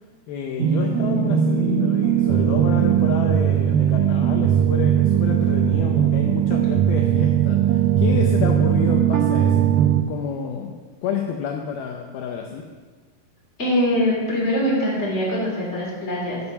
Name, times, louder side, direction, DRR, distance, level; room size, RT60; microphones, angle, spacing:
voice 1, 0.3-9.7 10.0-10.7 11.0-12.7, left 7 dB, 75° left, 2 dB, 2.4 m, -29 dB
sound 1, 0.6-10.0, right 10 dB, 85° right, 2.1 m, -19 dB
voice 2, 13.6-16.4, equal, 20° left, -5 dB, 2.8 m, -22 dB
11.5 x 7.0 x 5.7 m, 1.4 s
omnidirectional pair, 4.8 m